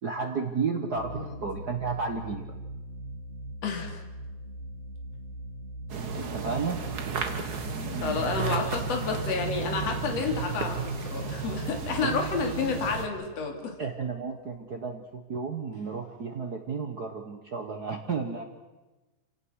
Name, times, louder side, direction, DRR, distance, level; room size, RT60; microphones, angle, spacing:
voice 1, 0.0-2.5 6.1-6.8 12.0-12.1 13.8-18.4, right 5 dB, 65° right, 4 dB, 0.9 m, -32 dB
sound 1, 0.9-14.2, right 1 dB, 35° left, 6.0 m, -41 dB
voice 2, 3.6-4.0 7.9-13.7, left 5 dB, 50° left, 3 dB, 3.6 m, -30 dB
sound 2, 5.9-13.1, right 6 dB, 45° right, 1.4 m, -33 dB
27.5 x 18.0 x 6.4 m, 1.1 s
omnidirectional pair, 3.8 m